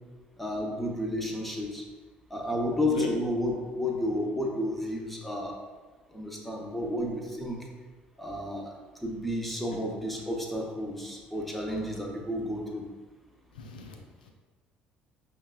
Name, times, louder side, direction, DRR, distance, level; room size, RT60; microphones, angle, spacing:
voice 1, 0.4-1.8 2.3-5.6 6.1-7.6 8.2-8.7 9.0-12.8, left 1 dB, 5° left, -1 dB, 0.8 m, -31 dB
voice 2, 13.5-14.3, left 6 dB, 90° left, 3 dB, 0.3 m, -38 dB
5.4 x 2.2 x 2.3 m, 1.4 s
hypercardioid pair, 55°, 4 cm